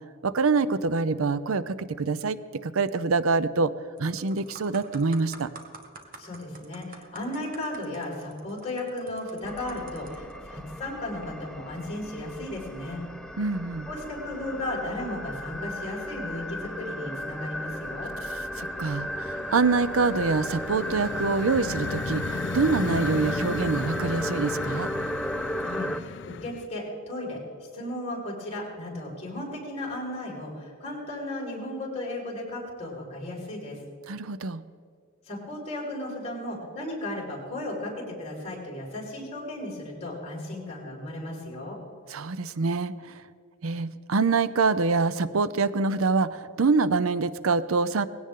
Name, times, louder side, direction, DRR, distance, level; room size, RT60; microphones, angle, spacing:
voice 1, 0.2-2.4 2.6-3.7 4.0-5.5 13.4-13.9 18.6-24.9 34.1-34.6 42.1-43.2 43.6-48.1, right 4 dB, 85° right, 14 dB, 0.6 m, -25 dB
sound 1, 3.5-3.6 4.0-10.4 11.1-11.3, right 4 dB, 45° right, 1.5 m, -48 dB
voice 2, 6.2-13.0 13.9-18.1 25.6-26.1 26.4-27.4 27.7-33.8 35.3-41.8, left 1 dB, 30° left, -4 dB, 5.1 m, -35 dB
sound 2, 9.4-26.0, equal, 5° left, 0.5 m, -35 dB
sound 3, 13.6-14.1 14.4-15.2 15.5-26.7, left 5 dB, 60° left, 0.4 m, -37 dB
19.5 x 16.5 x 3.7 m, 2.2 s
head